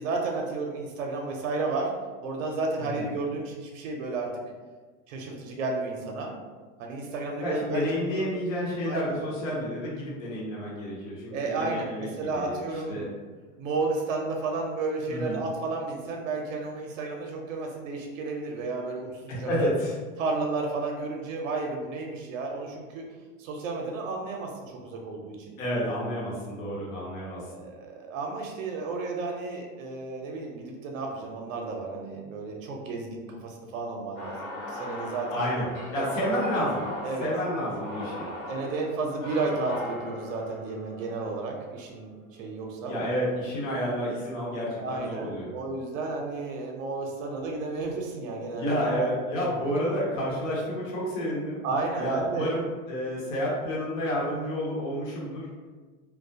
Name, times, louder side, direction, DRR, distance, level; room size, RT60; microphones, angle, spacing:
voice 1, 0.0-1.9 2.2-4.3 5.1-6.3 6.8-7.8 8.2-8.3 8.9-9.2 11.3-13.1 13.6-19.5 20.2-23.0 23.4-25.6 27.3-35.4 36.0-36.1 37.0-37.3 38.5-43.0 44.8-49.1 51.6-52.6, right 3 dB, 85° right, 1 dB, 0.5 m, -32 dB
voice 2, 7.4-12.5 12.9-13.1 15.1-15.4 19.3-20.0 25.6-27.4 35.3-35.6 35.9-36.9 37.2-38.3 42.9-45.5 48.5-51.6 52.0-55.5, equal, 90° left, -5 dB, 0.9 m, -30 dB
sound 1, 34.2-42.3, left 1 dB, 40° left, 1.0 m, -38 dB
2.3 x 2.0 x 2.6 m, 1.4 s
hypercardioid pair, 110°, 38 cm